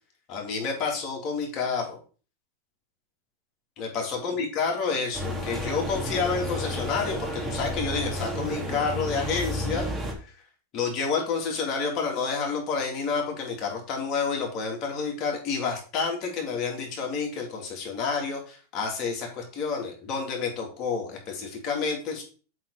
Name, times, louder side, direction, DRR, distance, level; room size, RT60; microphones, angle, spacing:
voice 1, 0.3-2.0 3.8-9.8 10.7-22.2, left 5 dB, 40° left, 0 dB, 3.1 m, -29 dB
sound 1, 5.1-10.1, equal, 10° right, 2.6 m, -31 dB
7.7 x 4.4 x 5.0 m, 0.37 s
supercardioid pair, 125°, 0 cm